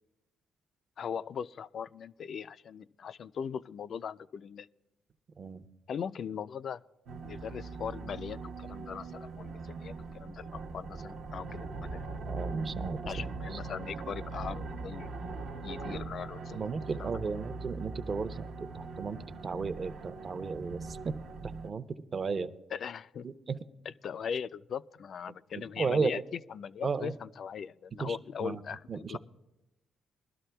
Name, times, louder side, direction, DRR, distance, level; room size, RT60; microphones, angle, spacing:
voice 1, 1.0-4.7 5.9-6.8 7.2-12.1 13.1-15.3 15.6-16.6 17.0-17.2 22.7-23.2 24.0-26.2 26.5-29.2, left 7 dB, 60° left, 15 dB, 0.3 m, -39 dB
sound 1, 7.1-21.7, right 3 dB, 75° right, 0.8 m, -41 dB
voice 2, 12.2-13.0 13.5-13.6 16.5-18.5 18.7-19.2 19.4-21.2 21.4-21.9 22.1-22.5 23.2-23.6 25.5-26.2 26.8-27.1 28.0-28.6 28.9-29.2, right 4 dB, 40° right, 11 dB, 0.6 m, -34 dB
21.0 x 12.0 x 2.3 m, 0.99 s
cardioid pair, 90°, 0 cm